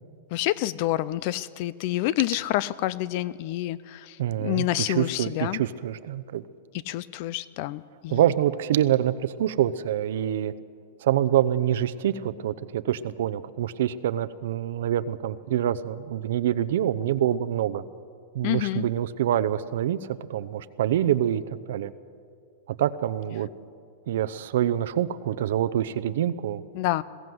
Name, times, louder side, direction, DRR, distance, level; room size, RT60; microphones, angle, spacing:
voice 1, 0.3-5.6 6.9-8.2 18.4-18.8 26.7-27.0, left 15 dB, 40° left, 20 dB, 0.4 m, -28 dB
voice 2, 4.2-6.4 8.1-10.5 11.0-17.8 18.3-21.9 22.7-23.5 24.1-26.6, right 11 dB, 65° right, 13 dB, 0.7 m, -26 dB
21.0 x 16.5 x 7.9 m, 2.3 s
supercardioid pair, 170°, 0 cm